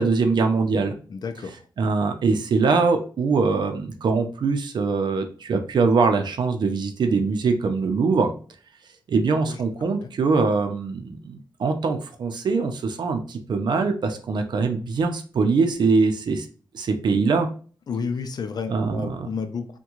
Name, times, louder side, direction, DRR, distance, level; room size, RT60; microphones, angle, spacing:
voice 1, 0.0-1.0 1.8-8.3 9.1-16.5 16.7-17.5 18.7-19.2, right 4 dB, 70° right, 6 dB, 0.6 m, -22 dB
voice 2, 1.1-1.7 9.5-9.6 10.0-10.1 17.9-19.8, left 5 dB, 60° left, 8 dB, 0.5 m, -31 dB
3.5 x 2.2 x 2.9 m, 0.40 s
wide cardioid pair, 115°, 8 cm